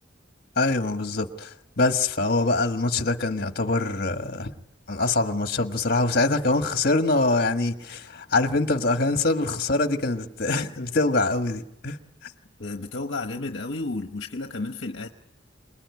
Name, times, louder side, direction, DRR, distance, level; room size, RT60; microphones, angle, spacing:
voice 1, 0.6-4.5 4.9-12.0, left 2 dB, 50° left, 1.6 m, -24 dB
voice 2, 12.6-15.1, left 2 dB, 70° left, 1.1 m, -32 dB
27.5 x 20.0 x 9.6 m
head